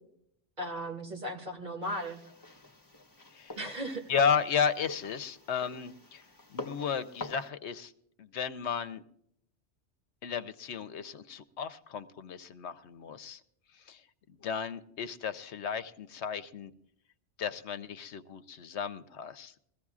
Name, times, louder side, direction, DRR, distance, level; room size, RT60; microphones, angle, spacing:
voice 1, 0.6-2.2 3.6-4.1, right 1 dB, 45° right, 1 dB, 2.6 m, -36 dB
sound 1, 1.8-7.5, left 3 dB, 20° left, 1.1 m, -46 dB
voice 2, 4.1-6.2 6.5-7.9 8.2-9.0 10.2-13.4 13.7-14.0 14.3-16.7 17.4-19.5, left 7 dB, 75° left, 12 dB, 1.0 m, -34 dB
21.5 x 15.0 x 2.4 m, 0.71 s
omnidirectional pair, 1.2 m